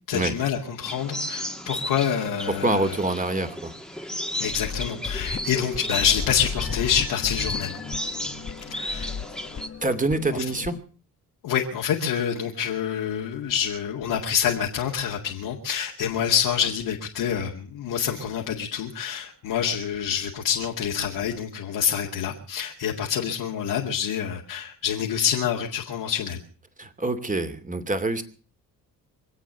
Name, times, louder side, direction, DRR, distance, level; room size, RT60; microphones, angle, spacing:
voice 1, 0.1-3.0 4.4-7.8 8.7-9.1 10.3-10.4 11.4-26.4, left 8 dB, 70° left, -1 dB, 2.3 m, -27 dB
sound 1, 0.8-9.7, left 1 dB, ahead, 1.9 m, -34 dB
voice 2, 2.5-3.7 9.8-10.8 26.8-28.2, right 2 dB, 20° right, 9 dB, 2.7 m, -26 dB
sound 2, 4.4-10.8, left 6 dB, 40° left, 1.3 m, -35 dB
24.5 x 8.5 x 6.7 m, 0.41 s
hypercardioid pair, 45°, 39 cm